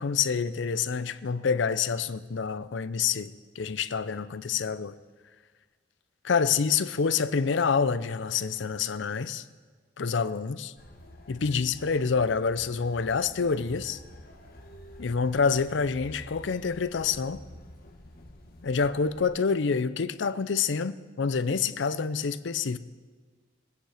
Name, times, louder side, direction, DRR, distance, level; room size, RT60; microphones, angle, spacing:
voice 1, 0.0-4.9 6.2-9.5 10.0-10.7 11.3-14.0 15.0-17.4 18.6-22.8, left 5 dB, 65° left, 0.5 m, -27 dB
sound 1, 10.8-19.3, left 1 dB, 50° left, 1.3 m, -49 dB
19.5 x 9.5 x 4.9 m
head